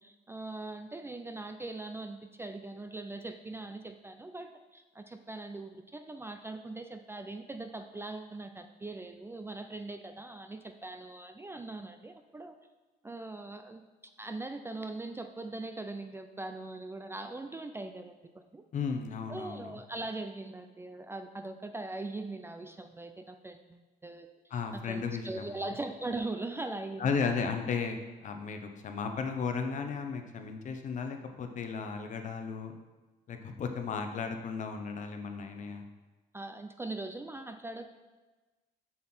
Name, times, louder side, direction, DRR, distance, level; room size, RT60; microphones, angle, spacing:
voice 1, 0.0-12.5 13.0-13.8 14.2-18.6 19.3-27.4 36.3-37.9, right 2 dB, 15° right, 7 dB, 0.4 m, -41 dB
voice 2, 18.7-19.7 24.5-25.6 27.0-32.7 33.3-35.8, left 5 dB, 45° left, 5 dB, 0.9 m, -35 dB
7.4 x 5.8 x 4.4 m, 1.2 s
cardioid pair, 110°, 17 cm